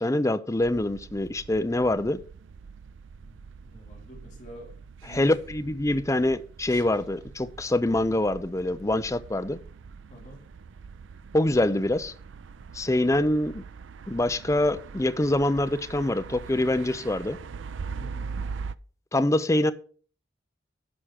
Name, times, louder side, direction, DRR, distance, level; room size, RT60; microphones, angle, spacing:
voice 1, 0.0-2.2 5.1-9.6 11.3-12.1 12.7-13.6 14.1-17.4 19.1-19.7, left 1 dB, 15° left, 0.5 m, -25 dB
sound 1, 0.6-18.7, right 5 dB, 75° right, 0.4 m, -42 dB
voice 2, 3.2-4.7 5.0-5.3 10.1-10.4 18.0-18.3, equal, 40° left, 2.8 m, -46 dB
11.0 x 5.0 x 5.8 m
head